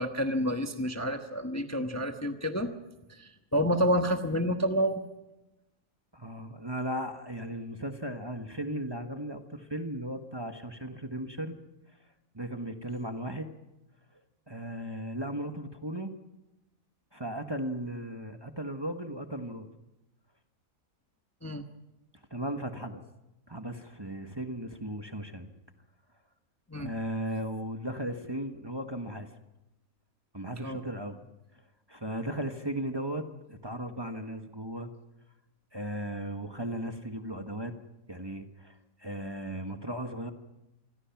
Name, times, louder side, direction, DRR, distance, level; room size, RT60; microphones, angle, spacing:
voice 1, 0.0-2.7 3.1-5.0 21.4-21.6 26.7-26.9 30.6-30.8, equal, 10° left, 5 dB, 1.1 m, -29 dB
voice 2, 6.1-11.6 12.3-13.5 14.5-16.1 17.1-19.7 22.3-23.0 23.5-25.5 26.8-29.3 30.3-31.2 31.9-34.9 35.7-37.7 38.1-40.3, right 1 dB, 20° right, 5 dB, 1.3 m, -36 dB
27.0 x 21.0 x 5.9 m, 0.97 s
omnidirectional pair, 1.4 m